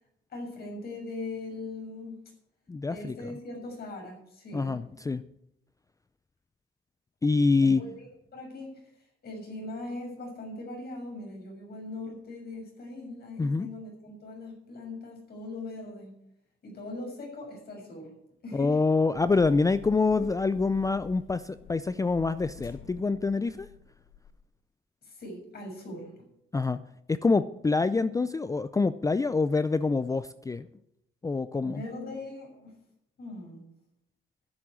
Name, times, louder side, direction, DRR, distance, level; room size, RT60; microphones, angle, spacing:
voice 1, 0.3-2.2 2.9-4.8 7.6-8.1 8.3-16.1 16.6-18.2 18.4-18.8 25.0-26.1 31.6-32.8 33.2-33.7, left 2 dB, 50° left, 0 dB, 6.6 m, -40 dB
voice 2, 2.7-3.2 4.5-5.2 7.2-7.8 13.4-13.7 18.5-23.7 26.5-26.8 27.1-30.7 31.2-31.8, left 3 dB, 15° left, 14 dB, 0.4 m, -26 dB
sound 1, 19.1-24.4, left 7 dB, 75° left, 1.6 m, -50 dB
11.0 x 7.7 x 8.3 m, 0.78 s
cardioid pair, 90°, 20 cm